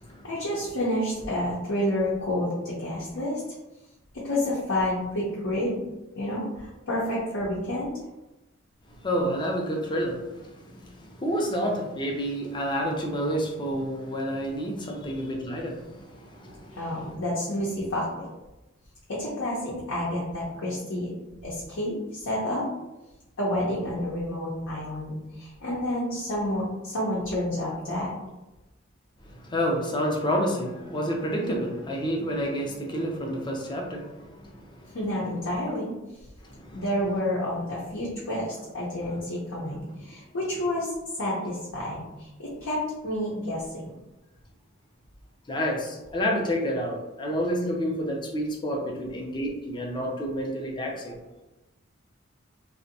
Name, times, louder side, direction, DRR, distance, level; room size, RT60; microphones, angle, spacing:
voice 1, 0.2-3.4 4.1-5.8 6.2-7.9 16.7-18.3 19.1-21.1 21.4-22.7 23.4-28.1 34.9-35.9 36.7-40.9 41.2-43.9, left 1 dB, 75° left, -8 dB, 0.6 m, -29 dB
voice 2, 8.9-17.1 29.2-34.9 36.4-36.8 45.5-51.2, equal, 25° left, 0 dB, 0.4 m, -29 dB
2.5 x 2.1 x 2.6 m, 1.0 s
head